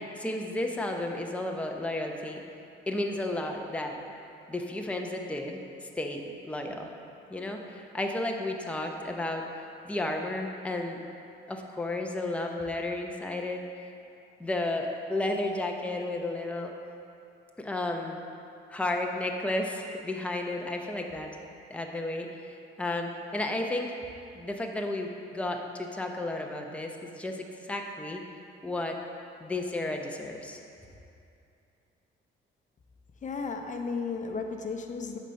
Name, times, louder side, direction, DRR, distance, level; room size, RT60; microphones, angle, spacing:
voice 1, 0.0-2.4 2.9-4.0 4.5-5.6 6.0-6.9 7.3-9.5 9.8-11.0 11.5-13.9 14.4-16.7 17.6-18.2 18.7-21.3 21.7-23.9 24.3-28.2 28.6-29.0 29.4-30.6, left 2 dB, 5° left, 2 dB, 0.7 m, -33 dB
voice 2, 33.2-35.2, left 4 dB, 40° left, 4 dB, 0.8 m, -34 dB
8.9 x 4.2 x 6.4 m, 2.6 s
cardioid pair, 90°, 20 cm